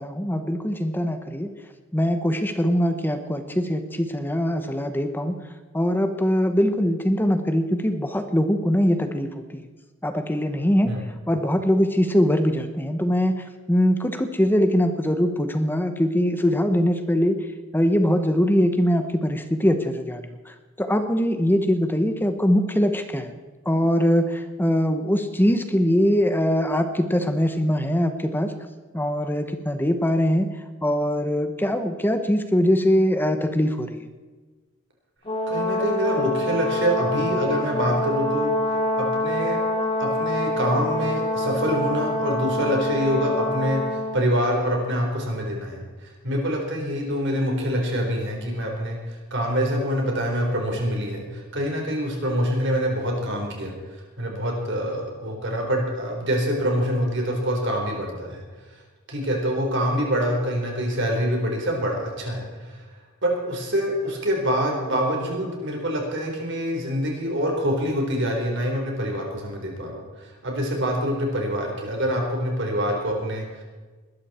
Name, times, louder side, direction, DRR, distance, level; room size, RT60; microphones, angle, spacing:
voice 1, 0.0-1.5 1.9-5.4 5.7-9.3 9.5-9.6 10.0-17.5 17.7-23.3 23.6-28.5 28.9-30.5 30.8-34.0, equal, 10° left, 8 dB, 1.0 m, -22 dB
Brass instrument, 35.2-44.2, left 1 dB, 25° left, 3.0 m, -26 dB
voice 2, 35.5-39.6 40.0-58.4 58.7-58.8 59.1-62.8 63.2-73.6, equal, 60° right, 1 dB, 4.1 m, -26 dB
21.0 x 13.0 x 4.4 m, 1.3 s
head